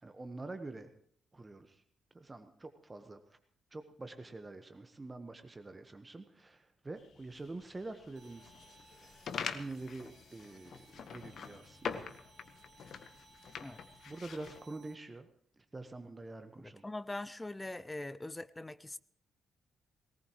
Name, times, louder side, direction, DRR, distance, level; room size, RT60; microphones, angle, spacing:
voice 1, 0.0-0.9 1.3-1.8 2.1-3.2 3.7-12.1 14.1-15.3 15.7-16.9, right 2 dB, 25° right, 8 dB, 1.3 m, -46 dB
sound 1, 7.0-14.6, left 6 dB, 55° left, 1.1 m, -45 dB
sound 2, 8.2-15.0, right 4 dB, 50° right, 1.1 m, -63 dB
voice 2, 16.6-19.0, left 2 dB, 20° left, 16 dB, 0.7 m, -42 dB
20.0 x 18.5 x 3.1 m, 0.62 s
figure-of-eight pair, 40°, 0 cm